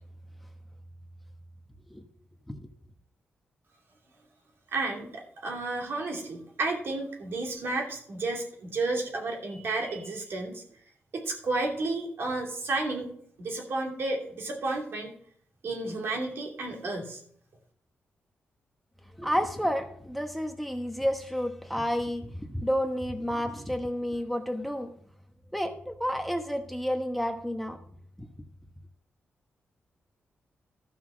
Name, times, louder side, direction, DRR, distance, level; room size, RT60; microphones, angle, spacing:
voice 1, 4.7-10.6 11.1-13.1 13.4-15.1 15.6-17.2, right 2 dB, 65° right, 0 dB, 2.9 m, -32 dB
voice 2, 19.2-24.9 25.5-27.8, equal, ahead, 6 dB, 1.0 m, -30 dB
13.0 x 5.8 x 6.2 m, 0.63 s
cardioid pair, 95°, 4 cm